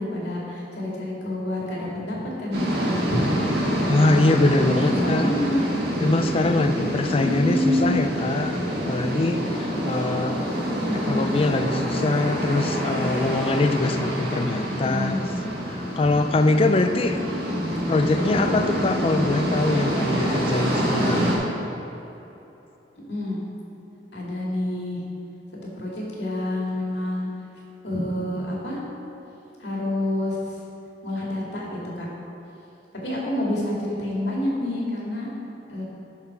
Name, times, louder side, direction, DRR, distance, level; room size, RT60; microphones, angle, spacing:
voice 1, 0.0-3.4 4.5-4.7 5.0-5.6 7.2-8.0 10.7-11.3 14.7-15.3 17.5-18.6 23.1-23.4 24.1-25.0 25.7-27.3 27.8-28.8 29.6-30.6 31.0-32.1 33.0-35.3 35.7-35.8, left 1 dB, 75° left, -4 dB, 2.1 m, -28 dB
sound 1, 2.5-21.4, equal, 65° right, 1.7 m, -26 dB
voice 2, 3.9-5.3 6.0-8.6 8.9-10.4 11.1-15.2 16.0-17.2 17.9-21.6, left 2 dB, 35° left, 8 dB, 0.4 m, -23 dB
7.4 x 6.1 x 5.8 m, 3.0 s
head